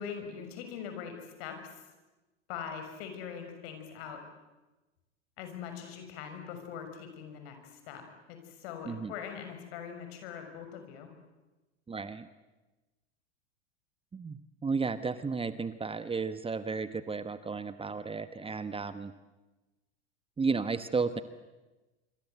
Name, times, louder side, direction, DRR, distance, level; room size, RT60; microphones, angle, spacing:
voice 1, 0.0-1.8 2.5-4.2 5.4-11.1, left 7 dB, 60° left, 6 dB, 6.4 m, -42 dB
voice 2, 11.9-12.3 14.1-19.1 20.4-21.2, right 4 dB, 15° right, 12 dB, 1.2 m, -33 dB
26.0 x 25.5 x 8.1 m, 1.1 s
hypercardioid pair, 85°, 35 cm